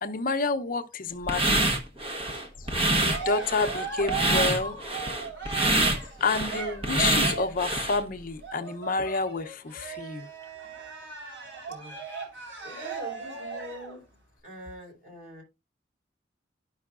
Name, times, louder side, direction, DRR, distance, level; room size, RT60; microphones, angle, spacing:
voice 1, 0.0-1.6 3.0-4.8 6.2-10.3, left 4 dB, 50° left, 0.7 m, -29 dB
sound 1, 1.3-8.0, right 2 dB, 30° right, 1.1 m, -26 dB
Cheering, 2.6-7.7 8.4-14.0, right 5 dB, 75° right, 4.7 m, -37 dB
voice 2, 11.7-12.0 12.6-14.1 14.4-15.4, equal, 50° right, 4.0 m, -43 dB
12.0 x 5.6 x 2.4 m
head